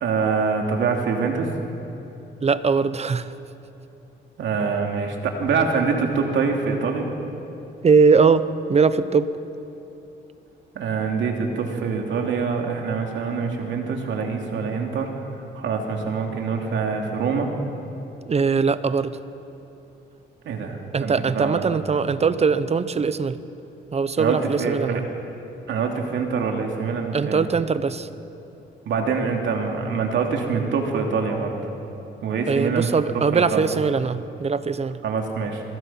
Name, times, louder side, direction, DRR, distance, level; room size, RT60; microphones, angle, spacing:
voice 1, 0.0-1.5 4.4-7.1 10.7-15.1 15.5-17.5 20.4-21.8 24.2-25.0 25.7-27.4 28.8-31.5 32.2-32.9 33.3-33.7 35.0-35.6, right 5 dB, 70° right, 2 dB, 2.9 m, -25 dB
voice 2, 2.4-3.3 7.8-9.3 18.3-19.2 20.9-23.4 23.9-25.0 27.1-28.1 32.5-35.0, right 5 dB, 30° right, 14 dB, 0.9 m, -21 dB
23.0 x 21.0 x 5.8 m, 2.9 s
cardioid pair, 90°, 20 cm